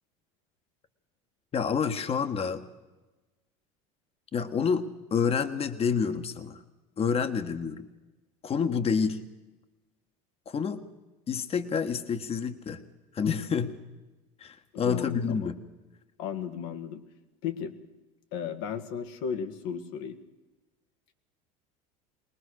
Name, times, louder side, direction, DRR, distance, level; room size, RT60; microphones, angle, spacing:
voice 1, 1.5-2.6 4.3-6.6 7.0-7.8 8.4-9.2 10.5-10.8 11.3-12.8 13.1-13.7 14.4-15.6, left 6 dB, 35° left, 9 dB, 1.5 m, -28 dB
voice 2, 14.7-15.5 16.2-17.0 17.4-17.7 18.3-20.2, left 7 dB, 75° left, 7 dB, 1.9 m, -34 dB
22.0 x 19.5 x 6.5 m, 1.1 s
supercardioid pair, 95°, 17 cm